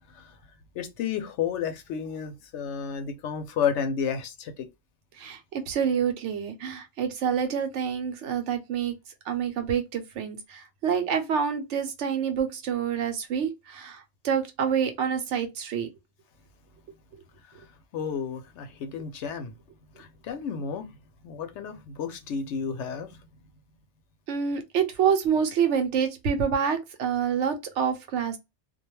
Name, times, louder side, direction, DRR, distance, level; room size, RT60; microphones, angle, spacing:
voice 1, 0.8-4.7 17.9-19.5 20.0-20.9 21.2-23.2, left 7 dB, 80° left, 0.9 m, -31 dB
voice 2, 5.2-8.9 9.3-15.9 24.3-28.4, right 7 dB, 80° right, 1.0 m, -27 dB
2.3 x 2.2 x 3.0 m
omnidirectional pair, 1.2 m